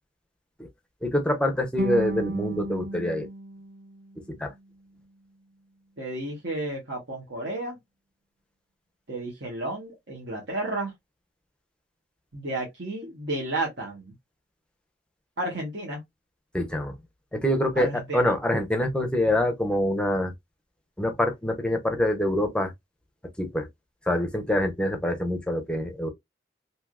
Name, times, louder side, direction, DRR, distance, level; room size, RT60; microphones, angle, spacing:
voice 1, 1.0-3.3 4.3-4.5 16.5-17.0 17.3-20.3 21.0-22.7 23.4-23.7 24.0-26.1, left 1 dB, 5° left, 0.5 m, -25 dB
sound 1, 1.8-4.9, right 1 dB, 55° right, 0.4 m, -34 dB
voice 2, 6.0-7.8 9.1-10.9 12.3-14.1 15.4-16.0 17.8-18.3, right 2 dB, 75° right, 1.2 m, -32 dB
3.3 x 2.7 x 2.3 m
head